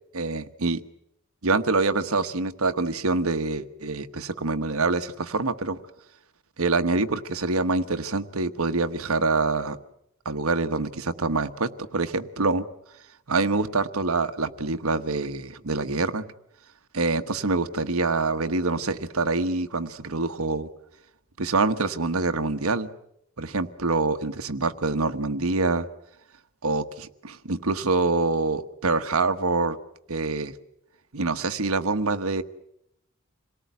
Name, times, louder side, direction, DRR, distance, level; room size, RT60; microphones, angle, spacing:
voice 1, 0.1-0.8 1.4-5.8 6.6-9.8 10.2-12.6 13.3-16.2 16.9-20.7 21.4-22.9 23.4-25.9 26.6-29.8 30.1-30.5 31.1-32.4, right 3 dB, 80° right, 9 dB, 1.2 m, -25 dB
27.0 x 18.5 x 9.5 m, 0.79 s
head